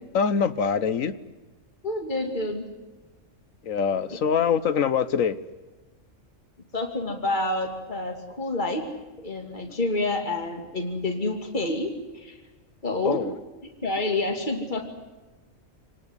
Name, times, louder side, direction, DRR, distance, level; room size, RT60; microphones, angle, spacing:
voice 1, 0.1-1.1 3.6-5.4 13.0-13.3, left 7 dB, 80° left, 13 dB, 1.5 m, -24 dB
voice 2, 1.8-2.6 6.7-8.8 9.2-12.4 12.8-13.2 13.8-14.9, left 2 dB, 35° left, 5 dB, 2.9 m, -28 dB
28.0 x 19.0 x 9.8 m, 1.2 s
omnidirectional pair, 1.4 m